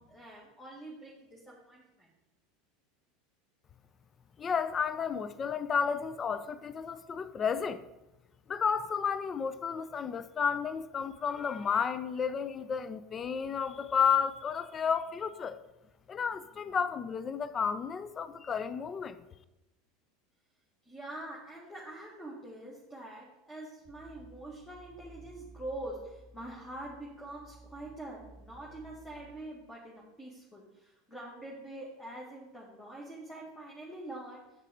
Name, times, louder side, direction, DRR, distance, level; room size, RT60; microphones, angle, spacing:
voice 1, 0.0-2.1 20.8-34.4, right 1 dB, 10° left, 1.8 m, -45 dB
voice 2, 4.4-7.8 8.5-15.6 16.1-19.2, left 6 dB, 30° left, 0.5 m, -32 dB
sound 1, 23.8-29.4, right 2 dB, 15° right, 1.4 m, -55 dB
7.3 x 6.5 x 5.0 m
figure-of-eight pair, 80°, 0 cm